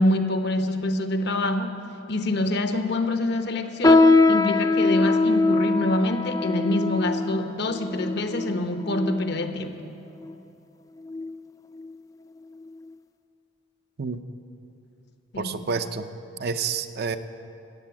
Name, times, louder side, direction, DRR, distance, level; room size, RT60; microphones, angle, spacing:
voice 1, 0.0-1.8 2.1-9.8 15.3-15.6, left 1 dB, 60° left, 7 dB, 0.9 m, -26 dB
sound 1, 3.8-9.5 10.2-10.3 11.0-11.3 11.7-11.9 12.6-12.7, left 3 dB, 15° left, 0.3 m, -22 dB
voice 2, 15.4-16.1 16.4-17.2, right 5 dB, 55° right, 9 dB, 0.5 m, -29 dB
13.5 x 8.2 x 8.5 m, 2.7 s
head